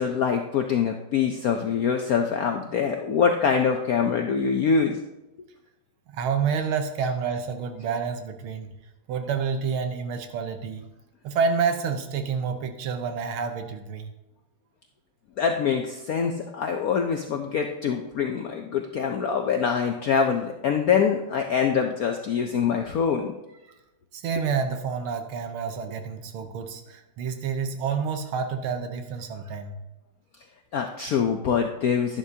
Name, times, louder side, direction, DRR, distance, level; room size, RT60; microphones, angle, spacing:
voice 1, 0.0-5.0 15.4-23.3 30.7-32.2, left 6 dB, 75° left, 4 dB, 0.8 m, -24 dB
voice 2, 6.1-8.7 9.1-10.8 11.2-14.1 24.1-29.8, right 6 dB, 85° right, 7 dB, 1.8 m, -28 dB
11.0 x 11.0 x 2.8 m, 0.97 s
omnidirectional pair, 2.3 m